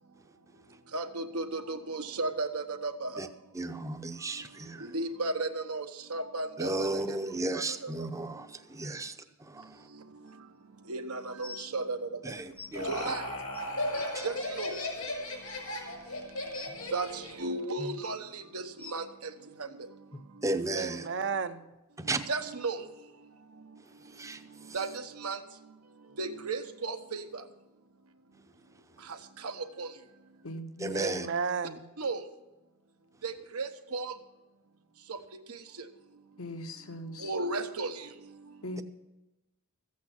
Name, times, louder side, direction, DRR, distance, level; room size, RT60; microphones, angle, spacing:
voice 1, 0.9-3.1 4.9-5.8 6.1-6.7 10.9-12.0 12.9-13.2 14.2-14.7 16.9-17.1 17.4-18.2 18.5-18.6 18.9-19.0 22.3-22.8 24.7-24.9 25.2-25.4 26.2-27.2 29.8-29.9 32.0-32.2 33.2-34.1 37.2-37.9, right 3 dB, 85° right, 1.1 m, -33 dB
voice 2, 3.5-4.9 6.6-9.8 12.2-13.1 14.0-14.2 20.4-21.1 22.0-22.3 24.0-24.8 30.8-31.3, right 2 dB, 15° right, 0.7 m, -35 dB
sound 1, 10.3-10.4 11.4-11.7 12.6-12.7 13.5-13.6 14.2-14.3 14.5-14.9 16.5-16.8 17.8-18.0 18.8-18.9 20.1-20.2 21.0-21.1 21.7-21.8, left 2 dB, 25° left, 0.7 m, -44 dB
Laughter, 12.3-17.5, left 1 dB, 85° left, 5.5 m, -36 dB
voice 3, 20.7-21.6 30.9-31.9, right 5 dB, 55° right, 0.7 m, -33 dB
voice 4, 30.4-31.3 36.4-37.3 38.6-38.8, equal, 70° left, 1.0 m, -40 dB
14.5 x 8.5 x 5.9 m
head